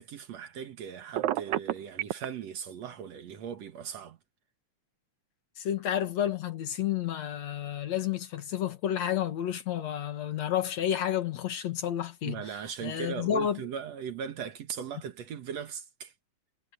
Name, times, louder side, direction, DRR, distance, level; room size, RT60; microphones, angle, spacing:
voice 1, 0.0-4.2 12.2-16.1, right 7 dB, 60° right, 2.4 m, -39 dB
Telephone, 1.2-2.3, right 14 dB, 80° right, 2.2 m, -29 dB
voice 2, 5.6-13.6, left 10 dB, 65° left, 2.7 m, -31 dB
omnidirectional pair, 3.5 m